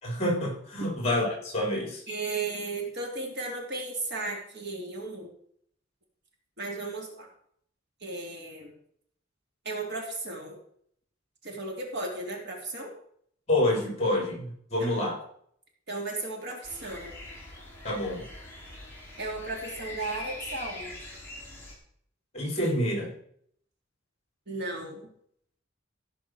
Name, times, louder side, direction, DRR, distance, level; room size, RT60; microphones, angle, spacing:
voice 1, 0.0-2.0 13.5-15.2 17.8-18.3 22.3-23.1, left 1 dB, 35° left, 1 dB, 3.8 m, -28 dB
voice 2, 2.1-5.3 6.6-7.3 8.0-8.8 9.6-10.6 11.4-12.9 14.8-14.9 15.9-17.1 19.2-20.9 24.5-25.1, right 3 dB, 60° right, 0 dB, 3.1 m, -35 dB
sound 1, 16.6-21.7, left 2 dB, 10° left, 3.9 m, -43 dB
15.0 x 5.4 x 6.3 m, 0.66 s
head